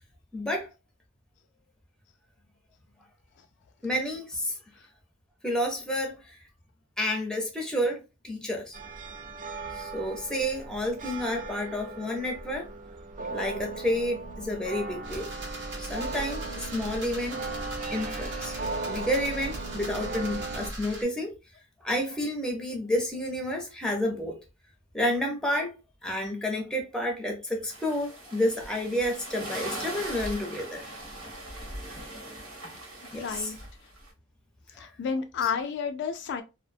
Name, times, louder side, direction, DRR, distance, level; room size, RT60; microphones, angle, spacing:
voice 1, 0.3-0.7 3.8-4.5 5.4-6.4 7.0-8.8 9.8-12.7 13.3-15.3 15.8-17.4 17.9-18.5 18.9-21.3 21.8-24.4 24.9-25.7 26.0-30.8 33.1-33.5 34.8-34.9, equal, 5° left, 0.6 m, -30 dB
sound 1, 8.7-20.7, right 3 dB, 40° right, 0.4 m, -37 dB
sound 2, 15.0-21.0, right 1 dB, 60° right, 0.9 m, -39 dB
sound 3, 27.7-34.1, right 1 dB, 85° right, 1.3 m, -40 dB
voice 2, 33.1-33.6 34.8-36.4, left 6 dB, 60° left, 0.3 m, -31 dB
2.4 x 2.2 x 2.5 m
head